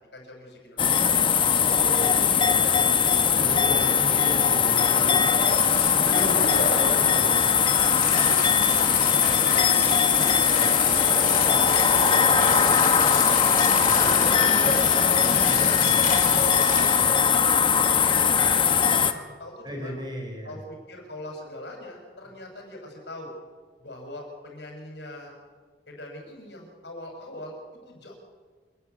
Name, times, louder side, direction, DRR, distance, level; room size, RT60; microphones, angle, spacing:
voice 1, 0.1-1.2 1.5-2.9 3.4-4.0 4.8-5.2 6.0-7.0 8.2-9.0 9.3-9.6 10.2-10.9 11.2-13.8 14.0-15.1 15.4-17.6 18.0-20.0 20.4-23.3 23.8-25.4 25.9-28.1, left 1 dB, 75° left, 1 dB, 7.0 m, -41 dB
sound 1, 0.8-19.1, left 7 dB, 30° left, 1.1 m, -20 dB
voice 2, 3.3-5.4 6.1-7.4 9.1-9.4 15.2-15.6 19.6-20.6, equal, 25° right, 2 dB, 4.9 m, -35 dB
sound 2, 5.5-17.1, left 4 dB, 50° left, 4.0 m, -33 dB
27.5 x 12.0 x 9.7 m, 1.5 s
head